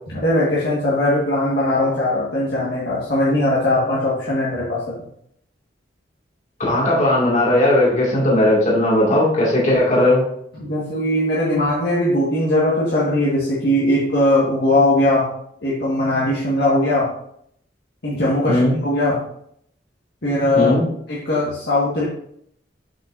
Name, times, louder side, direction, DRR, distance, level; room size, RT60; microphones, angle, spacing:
voice 1, 0.1-4.9 10.6-15.3 15.6-17.1 18.0-19.2 20.2-20.7 21.1-22.0, left 1 dB, 65° left, -8 dB, 1.6 m, -19 dB
voice 2, 6.6-10.2 18.5-18.7 20.6-20.8, left 1 dB, 45° left, -4 dB, 2.2 m, -17 dB
7.4 x 5.6 x 2.6 m, 0.69 s
head